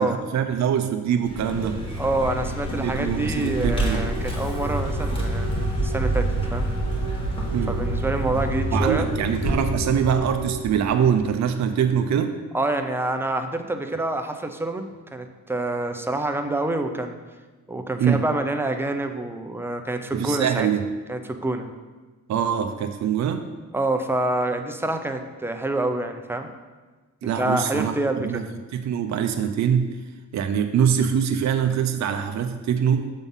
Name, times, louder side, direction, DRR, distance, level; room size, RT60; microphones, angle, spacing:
voice 1, 0.0-1.8 2.8-4.0 7.5-7.7 8.7-12.4 18.0-18.2 20.1-20.9 22.3-23.5 27.2-28.5 28.7-29.9 30.3-33.1, right 8 dB, 60° right, 7 dB, 0.5 m, -23 dB
Vehicle, 1.2-11.5, right 1 dB, 15° left, 1.5 m, -27 dB
voice 2, 2.0-6.7 7.7-9.1 12.5-17.2 17.7-20.7 21.1-21.7 23.7-26.5 27.2-28.4, right 2 dB, 5° right, 6 dB, 0.5 m, -27 dB
sound 1, 2.4-10.5, right 3 dB, 85° left, 1.8 m, -36 dB
7.2 x 3.8 x 5.4 m, 1.3 s
cardioid pair, 95°, 32 cm